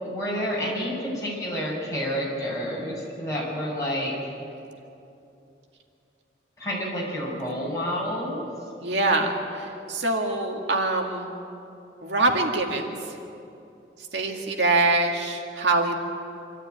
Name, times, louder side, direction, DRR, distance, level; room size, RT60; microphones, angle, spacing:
voice 1, 0.0-4.3 6.6-8.5, equal, 20° left, -5 dB, 6.6 m, -29 dB
voice 2, 8.8-11.3 12.0-13.0 14.1-16.0, right 2 dB, 85° right, 2 dB, 2.1 m, -24 dB
25.5 x 14.0 x 9.3 m, 2.7 s
head